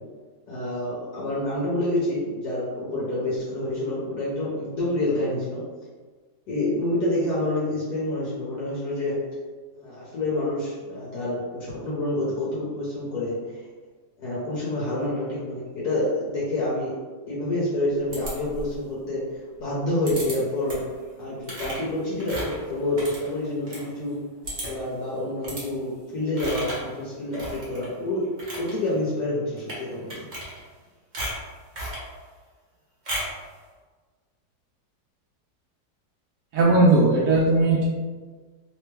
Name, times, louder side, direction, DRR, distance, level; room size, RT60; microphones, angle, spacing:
voice 1, 0.5-5.6 6.5-9.2 9.7-13.6 14.2-16.9 17.3-19.2 19.6-20.8 21.2-24.2 24.7-28.3 28.5-30.2, left 1 dB, 65° left, -8 dB, 1.3 m, -28 dB
sound 1, 18.1-18.8 20.1-20.4 20.7-21.0 21.4-23.8 24.1-24.2 24.4-24.9 25.4-25.7 26.4-26.9 27.3-27.9 28.2-28.7 29.6-29.8 30.1-30.8 31.1-32.1 33.1-33.4, equal, 45° right, 0.6 m, -34 dB
voice 2, 36.5-37.8, right 2 dB, 75° right, -5 dB, 0.8 m, -18 dB
3.3 x 2.2 x 3.2 m, 1.4 s
omnidirectional pair, 2.0 m